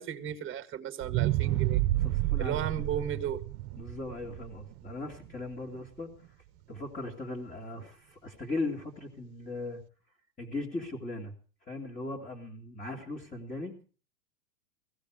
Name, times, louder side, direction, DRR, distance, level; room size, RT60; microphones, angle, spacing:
voice 1, 0.0-1.8 2.4-3.4, right 9 dB, 25° right, 10 dB, 1.7 m, -35 dB
sound 1, 1.0-5.3 5.8-5.9, right 15 dB, 40° right, 1.0 m, -30 dB
voice 2, 2.0-2.6 3.8-6.1 6.7-9.8 10.4-11.3 11.7-13.9, left 2 dB, 15° left, 0 dB, 2.9 m, -38 dB
17.5 x 16.0 x 5.1 m, 0.40 s
hypercardioid pair, 125°, 49 cm